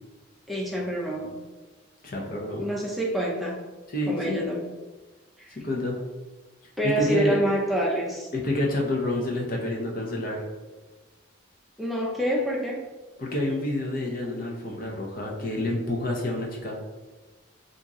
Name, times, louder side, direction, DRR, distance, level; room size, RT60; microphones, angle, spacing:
voice 1, 0.5-1.4 2.6-3.7 4.1-4.7 5.4-5.6 6.8-8.3 11.8-12.9, equal, ahead, -3 dB, 0.5 m, -27 dB
voice 2, 2.0-2.6 3.9-4.4 5.6-6.0 7.0-7.4 8.3-10.4 13.2-16.8, left 1 dB, 45° left, -1 dB, 0.7 m, -28 dB
2.9 x 2.6 x 3.6 m, 1.2 s
head